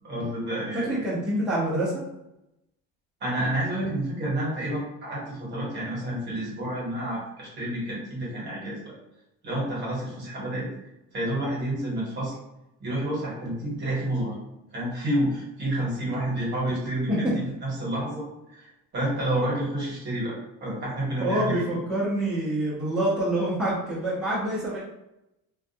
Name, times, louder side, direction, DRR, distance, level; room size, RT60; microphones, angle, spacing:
voice 1, 0.0-1.0 3.2-8.9 9.4-10.7 11.1-12.4 12.8-14.3 14.7-20.3 20.6-21.6, right 1 dB, 35° right, -5 dB, 1.1 m, -29 dB
voice 2, 0.7-2.0 17.1-17.3 21.2-24.8, right 1 dB, ahead, -11 dB, 0.7 m, -26 dB
2.3 x 2.3 x 2.7 m, 0.88 s
cardioid pair, 155°, 31 cm